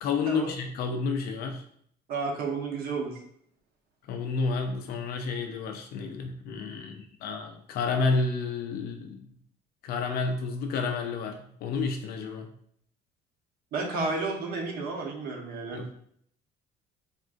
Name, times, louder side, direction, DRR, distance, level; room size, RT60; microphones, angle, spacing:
voice 1, 0.0-1.6 4.1-9.2 9.8-12.5 15.7-15.9, left 4 dB, 65° left, 4 dB, 0.4 m, -30 dB
voice 2, 2.1-3.1 13.7-15.8, right 3 dB, 65° right, 1 dB, 0.8 m, -31 dB
3.5 x 2.4 x 2.4 m, 0.65 s
cardioid pair, 110°, 17 cm